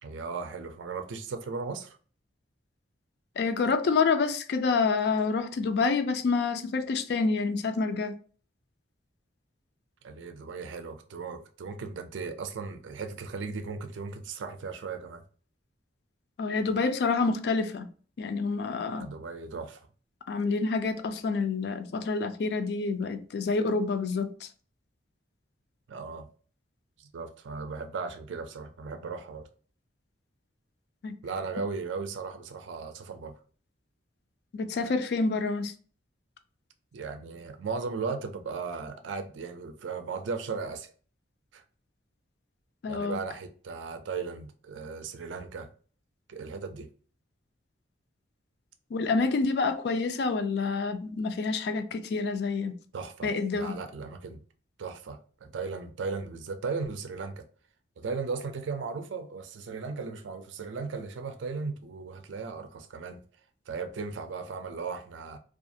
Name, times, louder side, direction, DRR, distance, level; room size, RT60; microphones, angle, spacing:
voice 1, 0.0-2.0 10.0-15.2 19.0-19.8 25.9-26.3 27.0-29.5 31.2-33.3 36.9-40.9 41.5-41.6 42.9-45.7 46.3-46.9 52.9-54.4 54.8-57.4 58.0-63.2 63.7-65.4, right 4 dB, 85° right, 0.4 m, -36 dB
voice 2, 3.4-8.1 16.4-17.9 18.2-19.1 20.3-24.5 31.0-31.2 34.5-35.7 42.8-43.2 48.9-52.8 53.2-53.8, left 4 dB, 60° left, 0.3 m, -28 dB
2.4 x 2.3 x 2.6 m
head